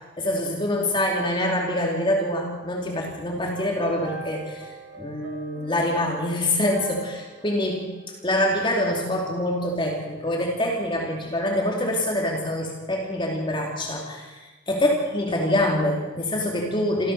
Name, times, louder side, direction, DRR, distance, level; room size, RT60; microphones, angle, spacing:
voice 1, 0.2-4.7 5.0-7.9 8.2-14.4 14.7-17.1, left 1 dB, 25° left, 0 dB, 2.7 m, -25 dB
sound 1, 3.4-8.7, right 2 dB, 90° right, 4.5 m, -42 dB
27.0 x 14.5 x 6.7 m, 1.2 s
head